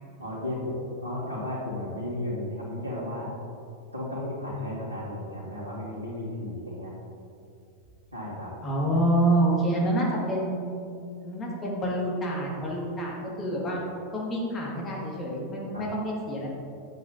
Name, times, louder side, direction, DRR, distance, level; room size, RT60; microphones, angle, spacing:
voice 1, 0.2-3.3 3.9-6.9 8.1-8.5 15.7-15.8, left 1 dB, 80° right, -6 dB, 2.4 m, -34 dB
voice 2, 8.6-10.7 11.2-13.8 14.1-16.5, right 1 dB, 25° left, -3 dB, 2.2 m, -27 dB
12.0 x 8.3 x 2.8 m, 2.5 s
figure-of-eight pair, 90°, 0 cm